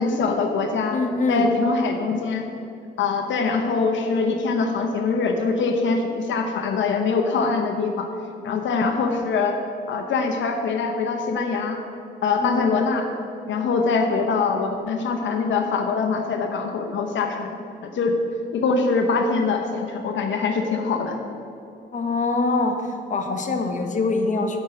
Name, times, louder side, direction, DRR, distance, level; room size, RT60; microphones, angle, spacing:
voice 1, 0.0-1.0 1.3-2.4 3.0-8.1 8.4-9.6 9.9-11.8 12.2-13.1 13.5-17.5 17.8-18.1 18.5-21.2, left 4 dB, 70° left, 5 dB, 0.9 m, -23 dB
voice 2, 0.9-1.5 12.4-12.8 21.9-22.8 23.1-24.6, left 3 dB, 40° left, 5 dB, 1.1 m, -23 dB
8.3 x 5.9 x 7.8 m, 2.7 s
cardioid pair, 90°, 20 cm